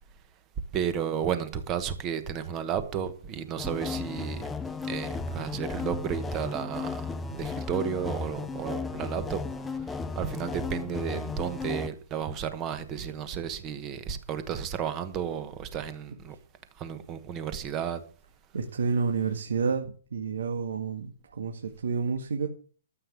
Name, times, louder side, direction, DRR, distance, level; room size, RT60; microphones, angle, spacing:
voice 1, 0.7-4.5 4.8-9.4 9.9-16.3 16.8-18.0, right 8 dB, 15° right, 1.1 m, -33 dB
sound 1, 3.6-11.9, left 4 dB, 5° left, 0.5 m, -34 dB
voice 2, 18.5-22.5, right 5 dB, 75° right, 2.0 m, -30 dB
13.5 x 7.8 x 7.1 m
hypercardioid pair, 175°, 0 cm